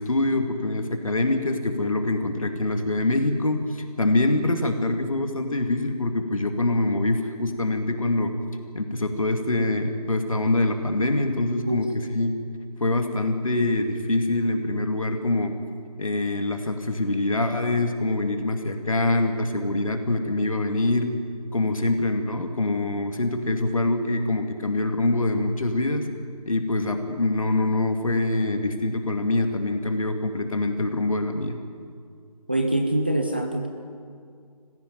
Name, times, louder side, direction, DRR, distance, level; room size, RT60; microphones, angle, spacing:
voice 1, 0.0-8.3 8.7-11.9 12.1-12.3 12.8-15.5 16.0-21.1 21.5-26.1 26.5-31.6, left 2 dB, 55° left, 5 dB, 2.4 m, -24 dB
voice 2, 32.5-33.7, right 1 dB, 15° right, 3 dB, 0.6 m, -24 dB
21.0 x 15.5 x 9.3 m, 2.2 s
figure-of-eight pair, 165°, 21 cm